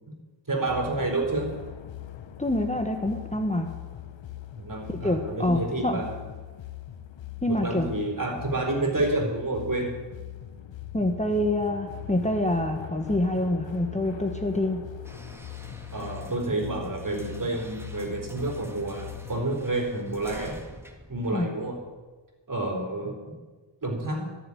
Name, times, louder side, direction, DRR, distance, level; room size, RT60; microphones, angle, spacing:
voice 1, 0.5-1.5 4.6-6.2 7.4-9.9 15.9-20.6 21.1-21.8 22.5-23.3 23.8-24.3, right 2 dB, 45° right, 1 dB, 4.2 m, -29 dB
sound 1, 0.7-19.5, left 11 dB, 70° left, 0.9 m, -41 dB
voice 2, 2.4-3.7 4.9-6.0 7.4-7.9 10.9-14.8 21.3-21.5, left 1 dB, 15° left, 4 dB, 1.3 m, -26 dB
sound 2, 15.0-22.0, equal, 5° right, 1.9 m, -46 dB
14.0 x 7.3 x 9.9 m, 1.3 s
cardioid pair, 55°, 46 cm